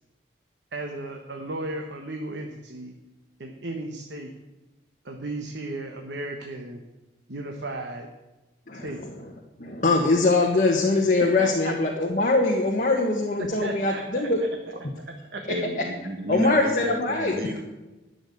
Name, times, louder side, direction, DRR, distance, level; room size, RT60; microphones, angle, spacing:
voice 1, 0.7-2.9 3.4-4.3 5.0-6.8 7.3-8.1 8.8-9.0 11.2-11.7 13.4-14.3 15.3-15.4, right 2 dB, 65° right, 3 dB, 1.2 m, -34 dB
voice 2, 8.7-9.1 9.6-14.4 16.3-17.3, left 2 dB, 40° left, 0 dB, 1.4 m, -22 dB
voice 3, 15.5-17.6, equal, 50° right, 4 dB, 1.6 m, -31 dB
11.5 x 7.0 x 9.4 m, 1.1 s
head